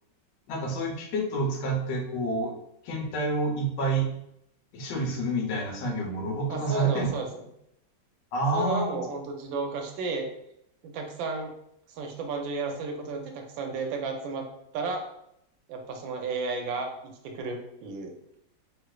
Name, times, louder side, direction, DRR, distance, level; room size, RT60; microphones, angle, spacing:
voice 1, 0.5-2.5 2.8-4.1 4.7-7.1 8.3-8.9, right 2 dB, 70° left, 1 dB, 1.2 m, -28 dB
voice 2, 6.5-7.3 8.5-10.3 10.8-11.5 11.9-14.5 14.7-15.1 15.7-16.9 17.2-18.1, right 4 dB, 80° right, 3 dB, 1.3 m, -32 dB
3.0 x 3.0 x 2.3 m, 0.76 s
omnidirectional pair, 2.1 m